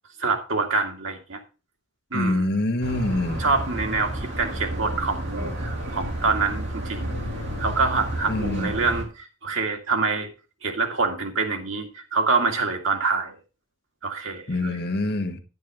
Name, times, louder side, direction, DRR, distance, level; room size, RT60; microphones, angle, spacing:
voice 1, 0.2-1.4 2.1-2.5 3.4-7.2 7.6-10.3 10.6-13.4 14.0-14.8, right 4 dB, 75° right, 3 dB, 2.2 m, -26 dB
voice 2, 2.1-3.4 8.3-8.7 14.5-15.4, left 2 dB, 55° left, 7 dB, 1.3 m, -25 dB
sound 1, 2.8-9.0, right 1 dB, 60° right, 3.3 m, -31 dB
10.0 x 9.4 x 3.5 m, 0.31 s
head